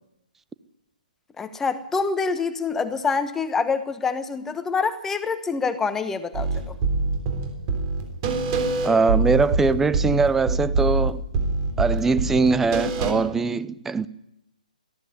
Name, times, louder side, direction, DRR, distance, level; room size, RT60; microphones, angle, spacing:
voice 1, 1.4-6.7, left 5 dB, 10° left, 1.2 m, -26 dB
sound 1, 6.3-13.1, right 3 dB, 30° right, 3.5 m, -25 dB
voice 2, 8.8-11.2 11.8-14.1, right 4 dB, 5° right, 0.6 m, -21 dB
18.0 x 15.0 x 9.7 m
figure-of-eight pair, 140°, 5 cm